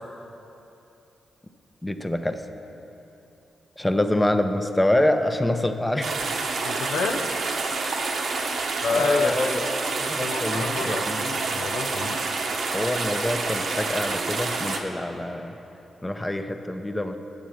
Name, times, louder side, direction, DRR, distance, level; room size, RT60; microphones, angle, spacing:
voice 1, 1.8-2.4 3.8-6.1 9.0-9.6 10.0-11.3 12.7-15.5 16.0-17.2, left 1 dB, 15° left, 7 dB, 0.6 m, -25 dB
sound 1, 6.0-14.8, right 3 dB, 70° right, 0.8 m, -28 dB
voice 2, 6.6-7.2 8.8-9.4 10.2-12.2, left 4 dB, 85° left, 4 dB, 0.5 m, -28 dB
8.8 x 7.1 x 6.3 m, 2.9 s
supercardioid pair, 50°, 0 cm